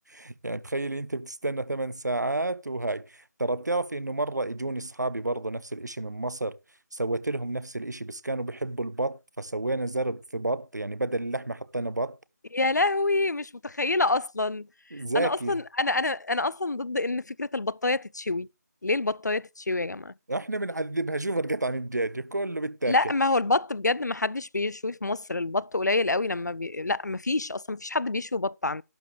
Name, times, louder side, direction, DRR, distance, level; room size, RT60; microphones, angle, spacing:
voice 1, 0.1-6.6 6.9-12.2 14.9-15.6 20.3-23.1, right 2 dB, 85° right, 0.8 m, -30 dB
voice 2, 12.5-14.7 15.1-18.5 18.8-20.1 22.9-28.8, left 2 dB, 85° left, 0.4 m, -27 dB
12.0 x 9.5 x 3.2 m
figure-of-eight pair, 155°, 9 cm